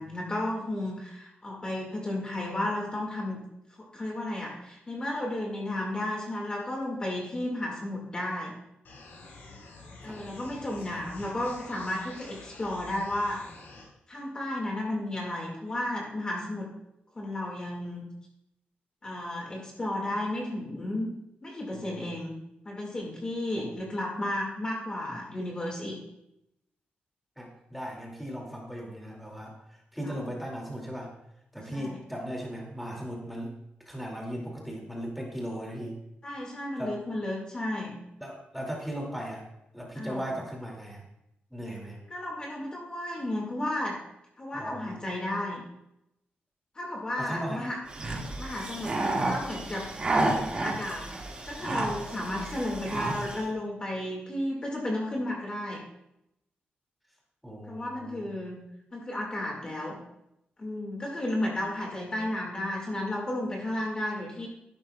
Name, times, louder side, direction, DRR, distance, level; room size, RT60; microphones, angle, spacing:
voice 1, 0.0-3.4 3.9-8.5 10.0-13.4 14.1-16.7 17.2-18.1 19.0-21.1 21.4-22.4 22.7-26.0 30.0-30.2 31.7-32.0 36.2-38.0 40.0-40.3 42.1-44.0 44.4-45.6 46.8-47.8 48.4-49.0 49.2-49.9 50.6-51.1 51.5-55.8 57.7-58.6 58.9-60.0 60.6-64.5, left 1 dB, 25° left, -1 dB, 1.9 m, -33 dB
sound 1, 8.8-13.8, left 3 dB, 70° left, 4.6 m, -48 dB
voice 2, 21.7-22.1 23.6-23.7 27.4-29.5 29.9-31.1 31.5-33.5 33.9-36.0 36.8-36.9 38.2-39.4 39.7-41.0 41.5-42.0 44.5-45.0 47.2-47.7 57.4-58.3, equal, ahead, -2 dB, 2.3 m, -37 dB
sound 2, 47.9-53.4, right 2 dB, 30° right, 1.9 m, -31 dB
14.0 x 11.5 x 2.3 m, 0.83 s
wide cardioid pair, 175°, 4 cm